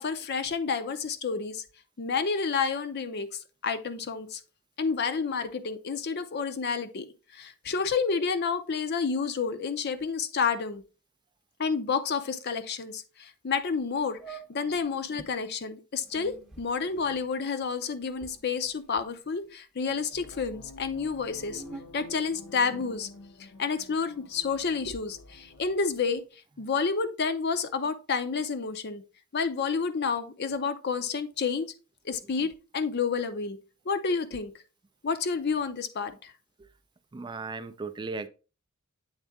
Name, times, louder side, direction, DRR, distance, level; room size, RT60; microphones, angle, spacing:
voice 1, 0.0-1.6 2.0-4.4 4.8-7.1 7.3-10.8 11.6-21.6 21.9-23.1 23.6-26.2 26.6-29.0 29.3-31.7 32.0-33.6 33.9-34.5 35.0-36.3, left 5 dB, 50° left, 0.6 m, -30 dB
sound 1, 13.6-13.7 14.2-15.3 16.0-19.5 19.8-20.4 21.0-23.0, right 3 dB, ahead, 0.7 m, -49 dB
sound 2, 20.1-26.3, left 3 dB, 80° left, 0.9 m, -49 dB
voice 2, 37.1-38.3, right 3 dB, 20° right, 0.3 m, -36 dB
8.0 x 3.6 x 3.5 m
head